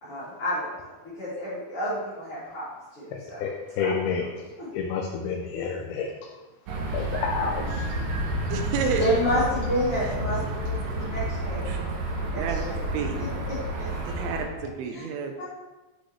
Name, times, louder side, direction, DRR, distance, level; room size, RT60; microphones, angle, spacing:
voice 1, 0.0-2.6 3.0-3.5 3.8-3.9 4.6-4.7 9.0-11.9 12.2-12.8 13.1-13.9 14.8-15.0 15.4-15.5, equal, 40° left, -13 dB, 3.9 m, -30 dB
voice 2, 3.1-4.3 4.7-6.1 6.9-7.9 14.6-14.7, left 6 dB, 90° left, 0 dB, 2.7 m, -29 dB
sound 1, 6.7-14.5, right 1 dB, 70° right, 2.6 m, -30 dB
voice 3, 8.5-9.0 10.9-11.0 11.7-11.8 12.3-13.2 14.1-15.3, right 5 dB, 90° right, 5 dB, 2.7 m, -30 dB
8.2 x 8.1 x 3.3 m, 1.1 s
omnidirectional pair, 4.3 m